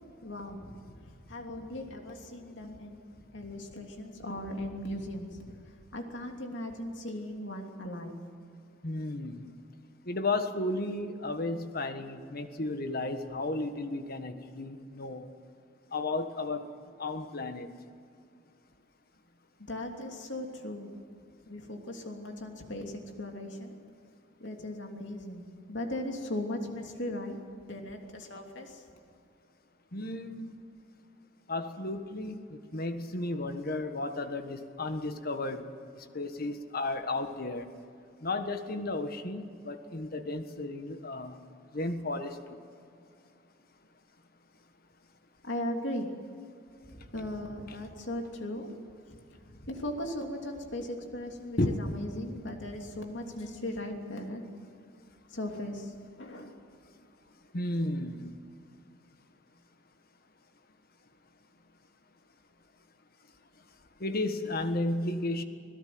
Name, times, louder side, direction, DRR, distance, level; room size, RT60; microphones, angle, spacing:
voice 1, 0.2-5.6 5.9-8.2 19.6-20.9 21.5-23.8 24.4-27.4 27.6-28.8 45.4-46.1 46.9-48.7 49.5-54.4 55.3-55.9 56.2-56.5, left 1 dB, 70° left, 3 dB, 3.1 m, -38 dB
voice 2, 8.8-9.5 10.1-15.3 15.9-16.7 17.0-17.7 29.9-30.5 31.5-35.6 36.1-37.7 38.2-41.4 41.7-42.6 51.6-51.9 57.5-58.3 64.0-65.4, left 2 dB, 50° left, 8 dB, 1.5 m, -33 dB
26.0 x 17.5 x 7.9 m, 2.4 s
head